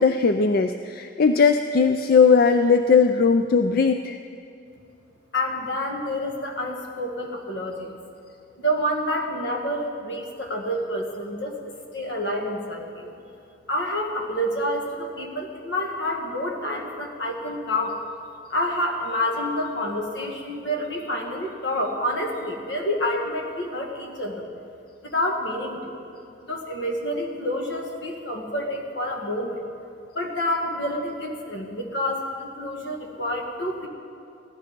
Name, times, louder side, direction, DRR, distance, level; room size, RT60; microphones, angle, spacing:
voice 1, 0.0-4.2, left 5 dB, 55° left, 8 dB, 0.4 m, -18 dB
voice 2, 5.3-7.9 8.6-13.1 13.7-18.0 18.5-24.5 25.0-26.0 26.4-29.6 30.1-33.9, left 1 dB, 80° left, 1 dB, 1.9 m, -28 dB
16.0 x 12.5 x 5.3 m, 2.6 s
head